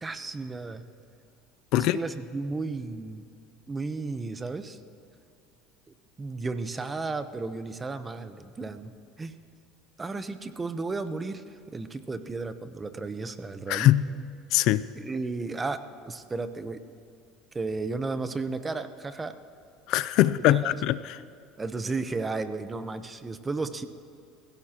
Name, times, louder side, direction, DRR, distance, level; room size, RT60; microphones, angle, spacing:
voice 1, 0.0-0.8 1.7-3.3 3.7-4.8 6.2-8.9 9.2-9.3 10.0-13.9 15.0-16.8 17.5-19.4 20.2-20.8 21.6-23.8, right 3 dB, 20° right, 10 dB, 0.9 m, -33 dB
voice 2, 13.7-14.1 14.5-14.8 19.9-21.2, left 14 dB, 65° left, 16 dB, 0.4 m, -22 dB
26.5 x 16.5 x 3.0 m, 2.5 s
supercardioid pair, 110°, 0 cm